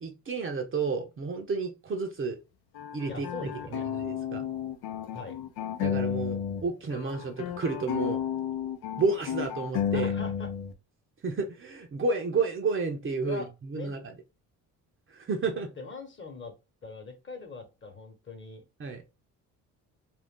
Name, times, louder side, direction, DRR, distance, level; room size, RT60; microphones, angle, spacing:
voice 1, 0.0-2.4 2.9-4.5 5.8-8.2 9.0-10.1 11.2-14.1 15.1-15.7 18.8-19.0, right 4 dB, 35° right, 0.7 m, -31 dB
sound 1, 2.7-6.6 6.9-10.7, left 9 dB, 80° left, 0.6 m, -32 dB
voice 2, 3.1-3.9 5.1-5.4 9.9-10.5 13.2-13.5 13.7-13.9 15.5-16.5 16.8-18.6, left 3 dB, 30° left, 1.1 m, -42 dB
2.5 x 2.2 x 3.6 m
supercardioid pair, 80°, 37 cm